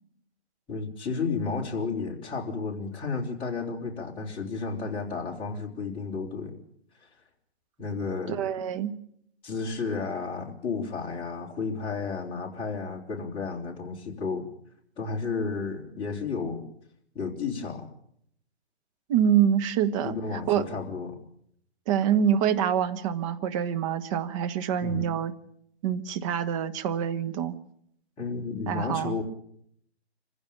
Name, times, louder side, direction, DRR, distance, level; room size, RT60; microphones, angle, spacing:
voice 1, 0.7-6.6 7.0-7.1 7.8-8.7 9.4-14.5 15.0-16.6 17.1-17.9 20.0-21.2 24.8-25.1 28.2-29.2, left 4 dB, 15° left, -2 dB, 3.6 m, -32 dB
voice 2, 8.3-9.0 19.1-20.1 20.5-20.6 21.9-25.3 25.8-27.6 28.7-29.2, right 9 dB, 30° right, 9 dB, 1.3 m, -26 dB
25.5 x 15.5 x 8.8 m, 0.70 s
hypercardioid pair, 145°, 34 cm